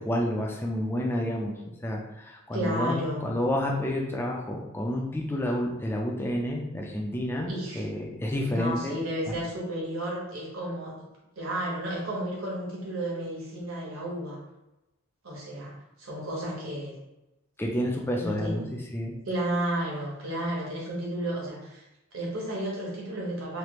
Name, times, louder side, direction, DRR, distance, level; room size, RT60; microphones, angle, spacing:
voice 1, 0.0-1.5 1.8-9.0 9.3-9.4 17.6-18.6 18.9-19.1, left 1 dB, 10° left, 0 dB, 0.4 m, -29 dB
voice 2, 2.5-3.3 7.5-7.9 8.5-11.0 11.4-14.4 15.2-16.9 18.2-18.7 19.2-21.8 22.1-23.6, right 1 dB, 70° right, -3 dB, 1.1 m, -32 dB
3.3 x 2.4 x 3.0 m, 0.95 s
head